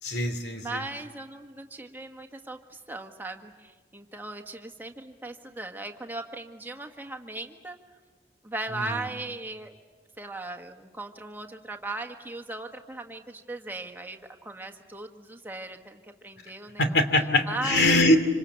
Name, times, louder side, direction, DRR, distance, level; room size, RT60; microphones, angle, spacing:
voice 1, 0.0-0.8 8.7-9.1 16.8-18.2, left 1 dB, 70° left, 8 dB, 2.7 m, -23 dB
voice 2, 0.6-7.8 8.4-9.8 10.2-17.0 17.5-18.0, right 2 dB, 10° right, 4 dB, 1.6 m, -38 dB
26.5 x 26.0 x 8.3 m, 1.3 s
head